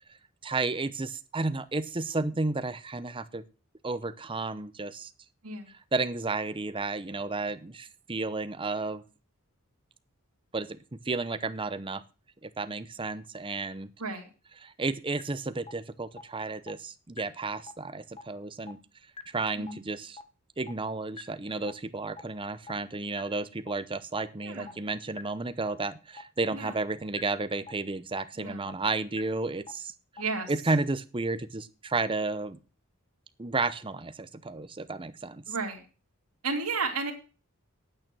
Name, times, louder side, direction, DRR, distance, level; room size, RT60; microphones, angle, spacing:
voice 1, 0.4-3.4 3.8-5.1 5.9-9.0 10.5-10.8 11.0-12.0 12.4-13.9 14.6-18.8 19.3-20.2 20.6-29.9 30.5-32.6 33.4-35.4, right 3 dB, 25° right, 13 dB, 0.8 m, -32 dB
sound 1, 15.2-15.3 15.7-15.8 16.2-16.3 16.7-16.8 17.2-17.3 17.7-17.8 18.2-18.3 18.7-18.8 19.2-19.3 19.7-19.8 20.2-20.3 20.7-20.8 21.2-21.3 21.7-21.8 22.2-22.3 22.7-22.8 23.2-23.3 23.7-23.8 24.2-24.3 24.7-24.8 25.2-25.3 25.7-25.8 26.2-26.3 26.7-26.8 27.2-27.3 27.7-27.8 28.2-28.3 28.7-28.8 29.2-29.3 29.7-29.8 30.2-30.3 30.7-30.8, left 4 dB, 25° left, 1.0 m, -41 dB
voice 2, 24.4-24.8 26.5-26.7 28.4-28.6 30.2-30.5 35.5-35.8 36.4-37.1, right 4 dB, 90° right, 2 dB, 2.7 m, -33 dB
9.1 x 8.8 x 6.1 m, 0.35 s
head